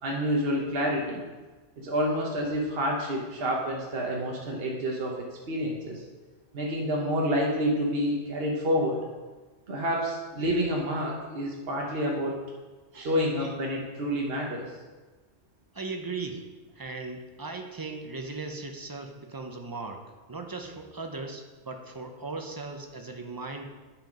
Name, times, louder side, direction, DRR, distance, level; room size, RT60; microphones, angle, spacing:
voice 1, 0.0-1.2 1.8-6.0 6.5-9.0 9.7-12.4 12.9-14.7, equal, 55° right, -2 dB, 1.3 m, -28 dB
voice 2, 15.7-23.7, right 3 dB, 25° right, 4 dB, 0.6 m, -38 dB
9.1 x 5.0 x 5.2 m, 1.3 s
omnidirectional pair, 1.2 m